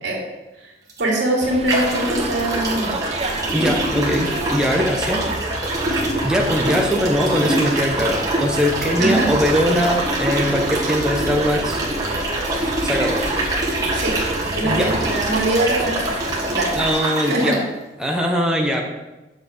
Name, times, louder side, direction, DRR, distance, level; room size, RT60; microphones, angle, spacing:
sound 1, 0.9-1.0 1.7-17.6, right 1 dB, 20° right, 1.7 m, -24 dB
voice 1, 1.0-2.9 9.0-9.3 13.9-14.2 14.6-16.2 16.5-16.8 17.2-17.6, right 1 dB, 75° right, -2 dB, 2.4 m, -22 dB
sound 2, 1.4-16.9, right 2 dB, 35° right, 0.8 m, -30 dB
voice 2, 3.5-5.2 5.7-12.0 12.8-13.2 14.6-14.9 16.7-17.6 18.0-18.8, equal, 5° right, 0 dB, 0.8 m, -21 dB
7.2 x 6.7 x 5.0 m, 1.1 s
head